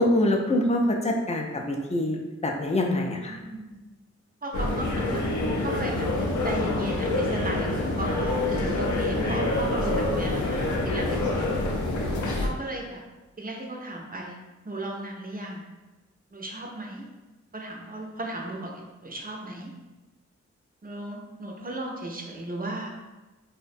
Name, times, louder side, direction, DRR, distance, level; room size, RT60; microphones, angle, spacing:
voice 1, 0.0-3.4, left 1 dB, 25° left, 1 dB, 0.4 m, -25 dB
voice 2, 3.3-3.8 4.4-5.2 5.6-11.6 12.4-13.0 13.4-14.4 14.6-15.6 16.3-17.0 17.5-19.7 20.8-22.9, right 1 dB, 30° right, 0 dB, 0.5 m, -36 dB
sound 1, 4.5-12.5, left 2 dB, 80° left, 0.5 m, -26 dB
2.4 x 2.1 x 2.5 m, 1.1 s
cardioid pair, 45°, 29 cm